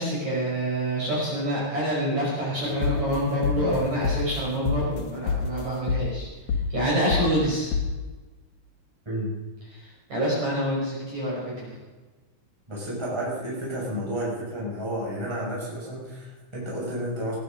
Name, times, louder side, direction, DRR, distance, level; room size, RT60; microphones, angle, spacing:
voice 1, 0.0-6.3 6.7-7.8 9.7-11.7, right 1 dB, 35° right, -6 dB, 6.2 m, -27 dB
sound 1, 2.6-4.4 4.6-5.0 5.3-5.6 5.9-6.2 6.5-6.8 7.1-7.4 7.7-8.0, left 5 dB, 65° left, 1.6 m, -27 dB
voice 2, 12.7-17.3, right 1 dB, 5° right, -5 dB, 5.8 m, -31 dB
20.0 x 12.0 x 5.3 m, 1.2 s
omnidirectional pair, 6.0 m